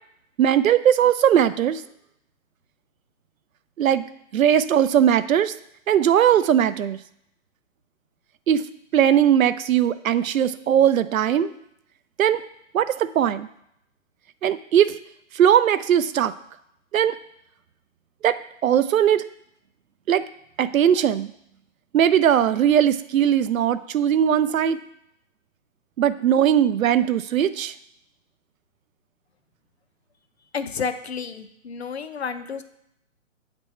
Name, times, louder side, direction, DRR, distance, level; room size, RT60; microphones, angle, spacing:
voice 1, 0.4-1.8 3.8-4.0 4.3-5.5 5.9-7.0 8.5-8.6 8.9-11.5 12.2-12.4 12.7-13.5 14.4-14.9 15.3-16.3 16.9-17.1 18.2-18.4 18.6-19.2 20.1-20.2 20.6-21.3 21.9-24.8 26.0-27.7, right 9 dB, 85° right, 13 dB, 0.6 m, -19 dB
voice 2, 30.5-32.6, left 6 dB, 55° left, 10 dB, 0.5 m, -31 dB
8.1 x 3.5 x 4.2 m, 0.76 s
hypercardioid pair, 180°, 40 cm